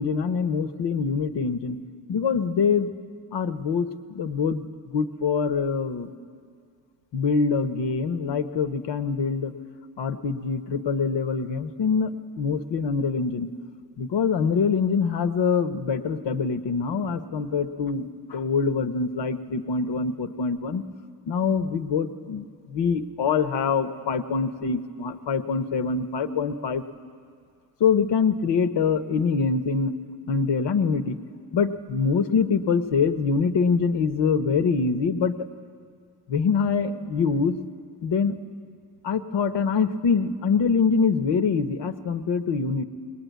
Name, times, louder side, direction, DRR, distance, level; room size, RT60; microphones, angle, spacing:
voice 1, 0.0-1.8 2.1-2.9 3.3-6.1 7.1-9.5 10.0-13.5 14.0-20.8 21.3-26.8 27.8-29.9 30.3-31.2 31.5-35.5 36.3-37.7 38.0-38.4 39.0-42.8, left 5 dB, 75° left, 9 dB, 1.1 m, -24 dB
21.0 x 20.0 x 9.4 m, 2.2 s
supercardioid pair, 55°, 43 cm